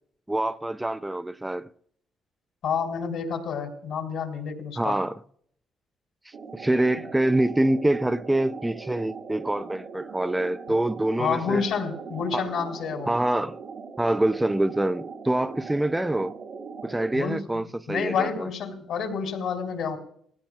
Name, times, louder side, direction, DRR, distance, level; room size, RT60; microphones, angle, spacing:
voice 1, 0.3-1.7 4.8-5.2 6.5-11.6 12.3-12.5 13.1-13.6 14.0-16.4 16.8-18.5, right 1 dB, 10° right, 0.5 m, -25 dB
voice 2, 2.6-5.0 11.2-13.1 17.1-20.0, left 6 dB, 75° left, 2.7 m, -29 dB
sound 1, 6.3-17.2, right 5 dB, 60° right, 1.4 m, -40 dB
17.5 x 16.5 x 2.3 m
cardioid pair, 90°, 0 cm